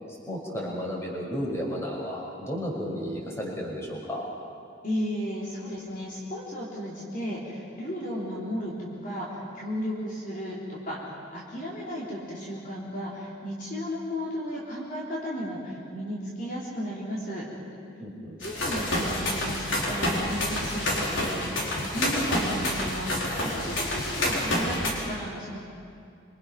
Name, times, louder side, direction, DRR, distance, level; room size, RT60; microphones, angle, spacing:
voice 1, 0.3-4.3 18.0-18.4, equal, 15° left, -3 dB, 5.7 m, -33 dB
voice 2, 4.8-17.5 18.4-25.6, equal, 45° left, -5 dB, 4.0 m, -34 dB
sound 1, 18.4-24.9, left 1 dB, 85° left, 4.7 m, -28 dB
26.5 x 25.0 x 6.1 m, 2.4 s
head